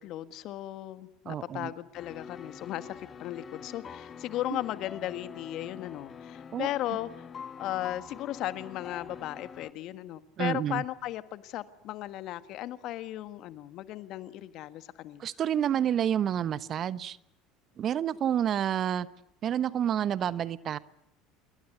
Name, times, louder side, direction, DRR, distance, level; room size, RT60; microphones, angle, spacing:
voice 1, 0.0-7.1 7.6-15.2, left 14 dB, 55° left, 11 dB, 1.6 m, -36 dB
voice 2, 1.3-1.7 4.5-4.6 6.5-6.7 10.4-10.8 15.2-17.2 17.8-19.1 19.4-20.8, right 9 dB, 40° right, 16 dB, 1.1 m, -29 dB
sound 1, 1.9-9.7, left 6 dB, 35° left, 1.5 m, -45 dB
27.0 x 23.0 x 8.3 m, 0.77 s
hypercardioid pair, 70°, 0 cm